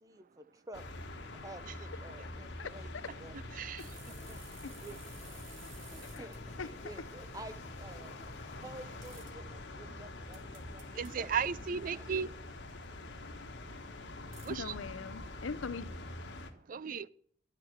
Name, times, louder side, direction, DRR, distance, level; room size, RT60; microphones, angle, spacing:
voice 1, 0.0-0.8 1.3-3.3 4.3-5.0 5.9-8.1 8.5-11.3 11.9-12.1, right 2 dB, 20° right, 0.8 m, -51 dB
sound 1, 0.7-16.5, left 2 dB, 65° left, 1.3 m, -46 dB
sound 2, 3.8-6.4 9.0-9.3 10.3-11.1 12.7-12.8 14.3-14.5, right 5 dB, 85° right, 2.3 m, -55 dB
sound 3, 3.9-9.0, left 2 dB, 35° left, 1.3 m, -55 dB
voice 2, 11.0-12.3 14.5-14.7 16.7-17.1, right 6 dB, 45° right, 0.4 m, -35 dB
voice 3, 14.5-15.9, left 5 dB, 85° left, 0.7 m, -41 dB
12.0 x 6.6 x 7.9 m
head